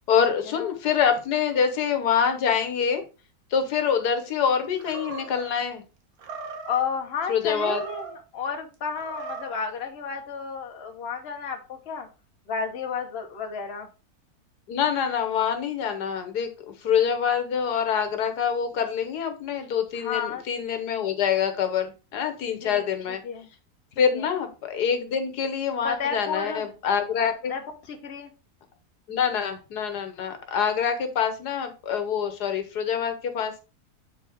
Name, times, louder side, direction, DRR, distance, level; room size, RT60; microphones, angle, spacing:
voice 1, 0.1-3.0 3.5-5.8 7.3-7.8 14.7-16.5 16.8-23.2 24.0-27.5 29.1-33.6, left 7 dB, 90° left, 7 dB, 1.6 m, -25 dB
Animal, 4.8-5.5 6.2-6.9 7.5-8.2 8.9-9.6, right 4 dB, 70° right, 1.5 m, -38 dB
voice 2, 6.7-8.1 8.3-12.1 12.5-13.9 19.9-20.4 22.6-22.8 23.2-23.5 24.1-24.3 25.8-26.6 27.5-27.6 27.9-28.3, left 6 dB, 45° left, 4 dB, 1.2 m, -32 dB
7.9 x 4.6 x 3.4 m, 0.32 s
omnidirectional pair, 1.7 m